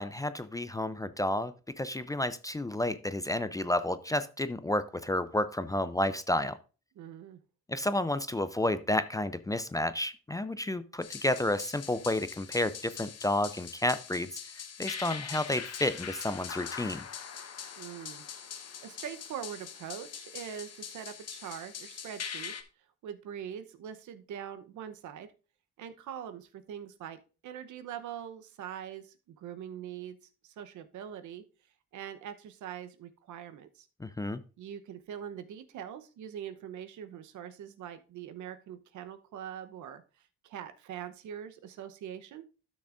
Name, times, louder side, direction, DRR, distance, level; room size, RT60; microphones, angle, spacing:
voice 1, 0.0-6.6 7.7-14.3 14.5-17.0 34.0-34.4, left 1 dB, 10° left, 13 dB, 0.4 m, -31 dB
voice 2, 7.0-7.4 17.8-18.2 18.6-22.5 23.0-25.3 25.8-30.2 30.4-31.4 31.9-33.9 34.6-40.0 40.4-42.4, right 9 dB, 75° right, 11 dB, 0.9 m, -43 dB
sound 1, 11.0-22.6, left 7 dB, 55° left, 1.0 m, -42 dB
12.0 x 6.2 x 2.5 m, 0.34 s
cardioid pair, 90°, 30 cm